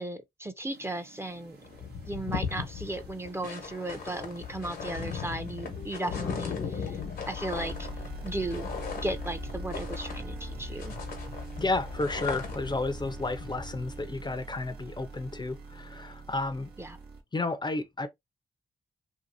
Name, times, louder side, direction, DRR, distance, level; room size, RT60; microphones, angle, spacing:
voice 1, 0.0-1.6 2.1-7.0 7.3-7.9 8.2-8.7 9.0-10.9 16.8-17.0, right 2 dB, 15° right, 0.5 m, -36 dB
sound 1, 0.7-17.2, right 4 dB, 80° right, 0.9 m, -44 dB
sound 2, 1.3-1.4 1.6-10.5 10.8-12.8, left 6 dB, 85° left, 1.0 m, -37 dB
sound 3, 5.8-15.1, left 7 dB, 65° left, 0.7 m, -43 dB
voice 2, 11.6-16.7 17.3-18.1, left 2 dB, 30° left, 0.5 m, -32 dB
2.8 x 2.7 x 2.6 m
supercardioid pair, 50°, 16 cm